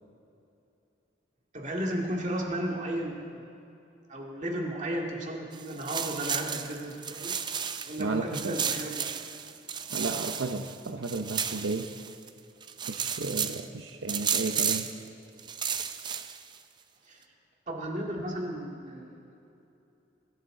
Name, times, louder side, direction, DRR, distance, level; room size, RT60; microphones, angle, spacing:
voice 1, 1.5-3.5 4.1-7.4 7.8-9.1 17.1-17.2 17.7-19.1, right 1 dB, 40° right, -1 dB, 2.1 m, -34 dB
sound 1, 5.5-8.0 8.3-12.3 12.6-13.6 14.1-15.0 15.4-16.6, right 7 dB, 25° right, 0.4 m, -33 dB
voice 2, 8.0-8.6 9.9-11.9 12.9-14.9, right 3 dB, 80° right, 5 dB, 0.7 m, -33 dB
23.5 x 12.0 x 3.8 m, 2.8 s
head